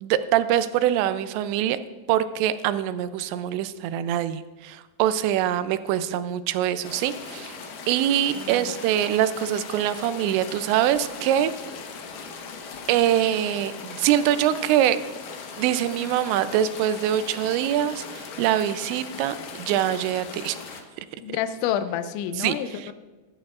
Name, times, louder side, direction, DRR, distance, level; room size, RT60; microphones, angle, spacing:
voice 1, 0.0-1.8 2.1-7.6 7.9-11.5 12.9-15.0 15.6-20.6 22.4-22.5, right 11 dB, 85° right, 12 dB, 2.8 m, -24 dB
sound 1, 6.8-20.8, left 5 dB, 70° left, 2.1 m, -39 dB
voice 2, 8.4-8.8 21.2-22.9, left 10 dB, 90° left, 10 dB, 3.0 m, -29 dB
23.0 x 11.0 x 2.4 m, 1.3 s
omnidirectional pair, 5.2 m